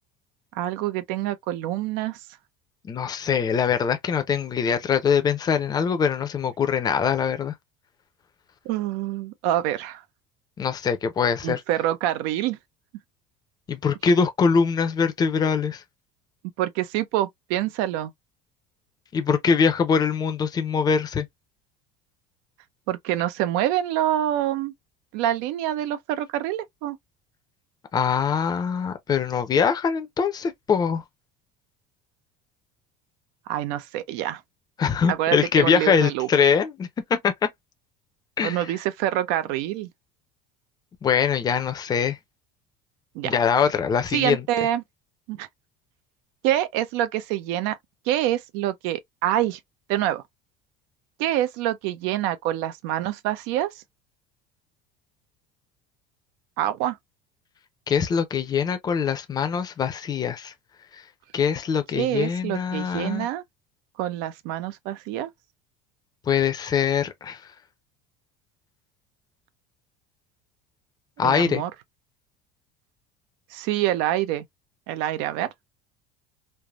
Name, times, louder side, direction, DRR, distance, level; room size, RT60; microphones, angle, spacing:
voice 1, 0.5-2.2 8.7-10.0 11.4-12.6 16.6-18.1 22.9-24.7 25.1-27.0 33.5-34.4 35.1-36.3 38.4-39.9 43.1-43.4 44.1-44.8 45.3-45.5 46.4-47.8 48.1-49.6 49.9-50.2 51.2-53.7 56.6-57.0 62.0-63.4 64.0-65.3 71.2-71.7 73.5-74.4 74.9-75.5, right 13 dB, 75° right, 0.5 m, -26 dB
voice 2, 2.8-7.5 10.6-11.6 13.7-15.8 19.1-21.3 27.9-31.0 34.8-37.3 38.4-38.6 41.0-42.2 43.2-44.4 57.9-60.5 61.3-63.3 66.3-67.4 71.2-71.6, left 6 dB, 20° left, 0.5 m, -23 dB
3.3 x 2.1 x 2.3 m
cardioid pair, 140°, 18 cm